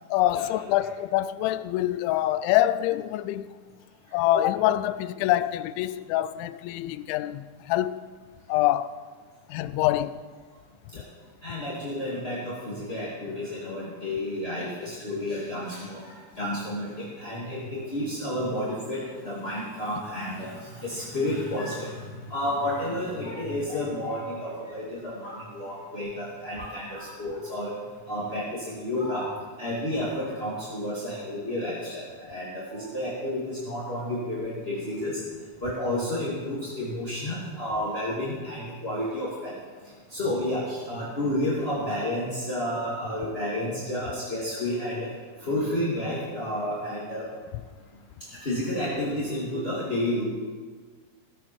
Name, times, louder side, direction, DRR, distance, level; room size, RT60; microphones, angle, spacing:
voice 1, 0.1-3.5 4.1-8.0 8.5-8.9 9.5-10.2, left 14 dB, 90° left, 3.0 m, -25 dB
voice 2, 11.4-16.0 16.4-27.7 28.1-29.3 29.6-35.2 35.6-39.5 40.1-45.1 45.4-47.3 48.4-50.3, left 1 dB, 20° left, 1.9 m, -31 dB
17.0 x 16.0 x 4.6 m
omnidirectional pair, 5.2 m